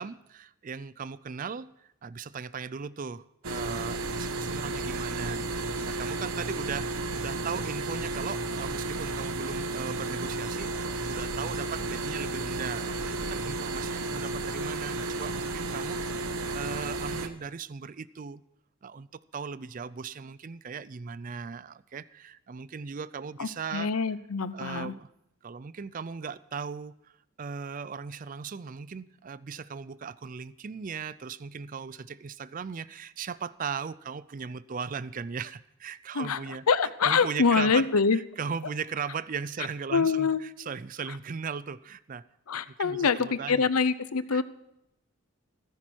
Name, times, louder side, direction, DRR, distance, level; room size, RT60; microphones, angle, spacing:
voice 1, 0.0-10.7 11.1-18.4 18.8-23.9 24.5-25.1 25.4-27.1 27.4-36.6 37.0-42.2 42.7-43.7 44.3-44.4, right 6 dB, 35° right, 0.4 m, -38 dB
sound 1, 3.4-17.3, right 2 dB, 75° right, 1.1 m, -33 dB
voice 2, 23.4-24.9 36.1-36.4 36.7-38.2 39.9-40.4 42.5-44.4, left 5 dB, 90° left, 0.7 m, -25 dB
15.0 x 14.0 x 4.5 m
head